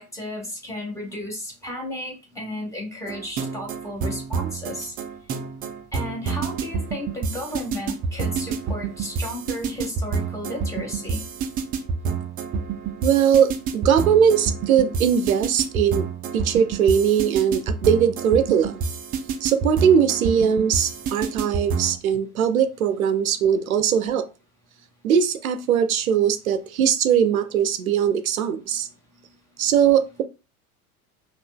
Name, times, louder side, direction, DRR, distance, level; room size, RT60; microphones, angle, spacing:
voice 1, 0.0-4.9 5.9-11.2 21.2-21.3, left 1 dB, 5° left, -2 dB, 1.7 m, -34 dB
sound 1, 3.1-22.0, right 5 dB, 20° right, 0.4 m, -28 dB
voice 2, 13.0-16.1 16.3-18.8 19.4-24.3 25.0-28.9 29.6-30.2, right 8 dB, 75° right, 11 dB, 0.6 m, -20 dB
5.4 x 2.4 x 2.2 m, 0.29 s
figure-of-eight pair, 75°, 43 cm